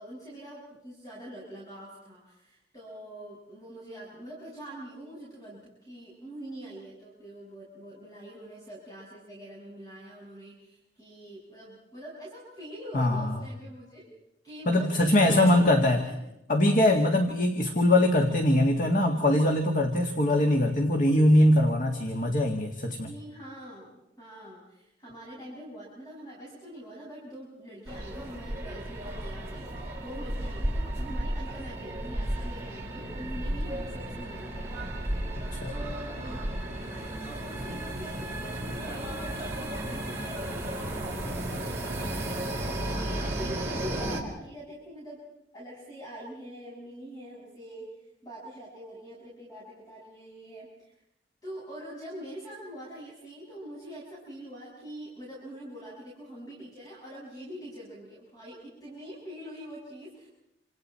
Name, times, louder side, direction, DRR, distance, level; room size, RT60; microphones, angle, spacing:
voice 1, 0.0-14.1 14.4-16.2 23.0-34.8 35.3-45.3 45.5-50.9 51.4-60.3, equal, 25° left, -6 dB, 6.9 m, -44 dB
voice 2, 12.9-13.4 14.7-16.0 16.5-23.1 35.5-35.6, left 1 dB, 50° left, 3 dB, 2.0 m, -22 dB
sound 1, 27.9-44.2, right 1 dB, 15° right, 4.9 m, -34 dB
28.5 x 27.0 x 4.4 m, 0.83 s
head